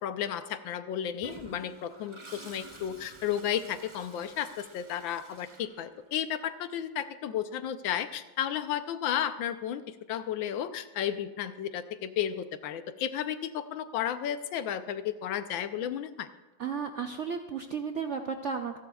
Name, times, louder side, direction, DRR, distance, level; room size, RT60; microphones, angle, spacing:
voice 1, 0.0-9.8 10.1-16.3, left 10 dB, 90° left, 11 dB, 1.5 m, -33 dB
Toilet flush, 1.2-6.3, right 2 dB, 20° right, 0.8 m, -50 dB
voice 2, 16.6-18.8, right 6 dB, 70° right, 5 dB, 0.6 m, -34 dB
28.0 x 11.0 x 2.3 m, 1.2 s
omnidirectional pair, 2.0 m